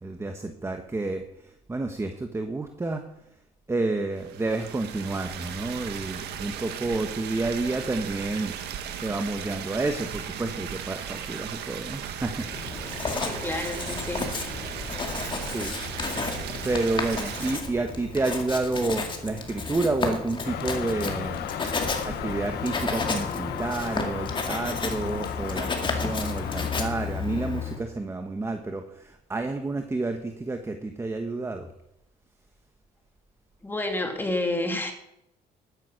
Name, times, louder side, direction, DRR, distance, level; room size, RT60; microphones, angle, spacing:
voice 1, 0.0-3.0 3.7-8.5 8.9-12.5 15.4-15.8 16.6-21.5 21.9-31.7, right 2 dB, 15° right, 6 dB, 1.2 m, -30 dB
sound 1, 4.2-17.6, right 9 dB, 75° right, 1.7 m, -36 dB
Writing, 12.4-27.8, left 4 dB, 30° left, 2.4 m, -32 dB
voice 2, 13.1-14.2 14.6-15.2 16.4-16.5 33.6-34.9, left 2 dB, 10° left, 4 dB, 2.5 m, -30 dB
sound 2, 20.4-26.9, left 11 dB, 70° left, 0.9 m, -36 dB
12.5 x 9.9 x 6.3 m, 0.80 s
cardioid pair, 110°, 17 cm